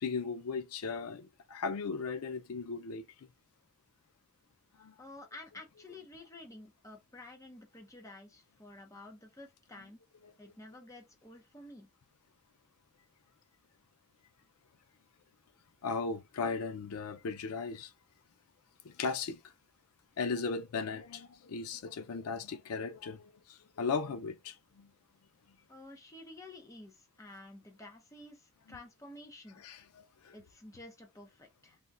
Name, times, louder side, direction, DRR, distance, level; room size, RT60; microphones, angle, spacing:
voice 1, 0.0-3.3 4.8-4.9 10.2-10.5 15.8-17.9 18.8-19.4 20.2-24.9 28.7-28.8 29.6-30.4, left 4 dB, 80° left, 0.5 m, -37 dB
voice 2, 5.0-10.0 10.4-11.9 25.7-29.6 30.3-31.8, left 2 dB, 15° left, 0.6 m, -51 dB
3.4 x 2.2 x 2.5 m
head